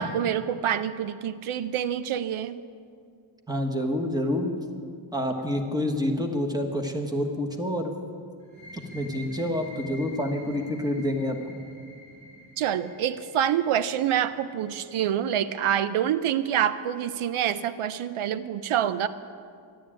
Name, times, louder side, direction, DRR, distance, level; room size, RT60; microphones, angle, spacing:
voice 1, 0.0-2.6 12.6-19.1, right 10 dB, 85° right, 14 dB, 0.7 m, -26 dB
voice 2, 3.5-4.5 5.1-7.9 8.7-11.6, left 1 dB, 10° right, 3 dB, 1.5 m, -28 dB
sound 1, 8.4-15.8, left 1 dB, 35° right, 4.7 m, -47 dB
13.0 x 11.5 x 8.8 m, 2.2 s
wide cardioid pair, 155°, 49 cm